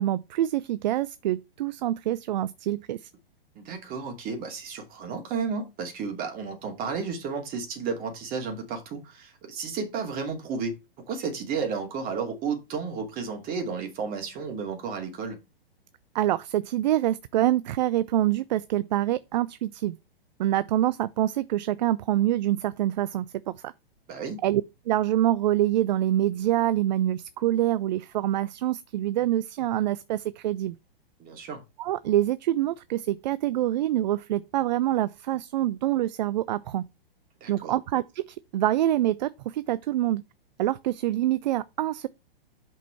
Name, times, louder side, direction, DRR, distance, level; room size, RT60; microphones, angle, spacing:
voice 1, 0.0-3.1 16.1-20.0 20.4-23.7 24.4-30.7 31.8-36.9 37.5-40.2 40.6-42.1, right 13 dB, 50° right, 0.4 m, -26 dB
voice 2, 3.5-10.7 11.1-15.4 24.1-24.4 31.2-31.6 37.4-37.8, right 5 dB, 30° right, 2.6 m, -32 dB
6.3 x 5.5 x 4.5 m
figure-of-eight pair, 115°, 30 cm